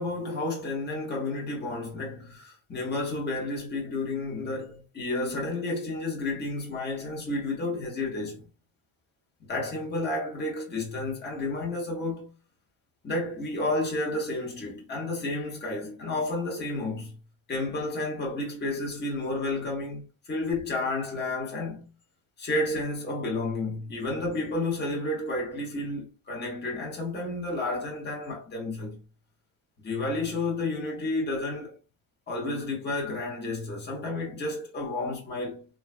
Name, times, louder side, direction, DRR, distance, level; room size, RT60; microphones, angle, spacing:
voice 1, 0.0-8.4 9.5-12.3 13.0-17.2 17.5-21.9 22.4-29.0 29.8-31.7 32.3-35.7, left 2 dB, 20° left, 0.8 m, -31 dB
3.1 x 2.3 x 2.4 m
wide cardioid pair, 160°, 48 cm